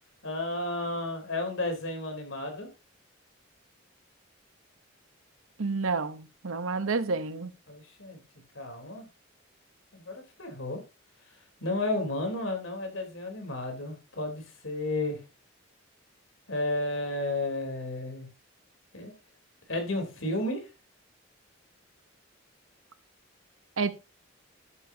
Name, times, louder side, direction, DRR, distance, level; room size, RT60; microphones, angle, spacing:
voice 1, 0.2-2.7 7.7-8.2 8.5-9.1 9.9-10.8 11.6-15.2 16.5-18.3 18.9-19.1 19.7-20.7, left 2 dB, 75° left, 3.5 m, -32 dB
voice 2, 5.6-7.5 23.8-23.9, right 4 dB, 90° right, 0.9 m, -29 dB
11.0 x 10.0 x 2.8 m
head